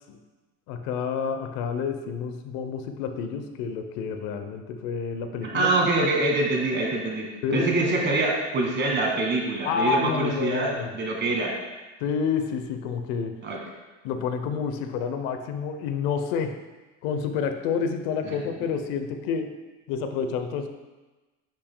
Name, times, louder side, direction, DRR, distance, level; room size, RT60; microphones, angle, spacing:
voice 1, 0.7-5.7 7.4-7.7 9.6-10.9 12.0-13.4 14.0-16.6 17.0-19.5 19.9-20.7, left 6 dB, 80° left, 7 dB, 0.8 m, -29 dB
voice 2, 5.4-11.5 13.4-13.6, right 2 dB, 35° right, -1 dB, 1.6 m, -25 dB
10.0 x 5.9 x 2.2 m, 1.2 s
cardioid pair, 130°, 34 cm